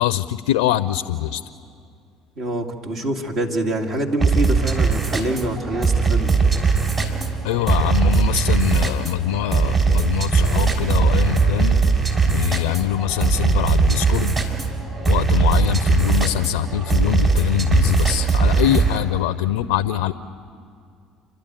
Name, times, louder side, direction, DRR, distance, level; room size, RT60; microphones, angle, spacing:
voice 1, 0.0-1.4 7.4-11.8 12.3-14.4 15.1-20.1, left 13 dB, 85° left, 14 dB, 0.5 m, -23 dB
voice 2, 2.4-6.4, right 1 dB, 60° right, 2 dB, 2.1 m, -25 dB
sound 1, 4.2-19.0, right 5 dB, 30° right, 3.7 m, -20 dB
29.5 x 12.0 x 9.0 m, 2.3 s
hypercardioid pair, 70°, 0 cm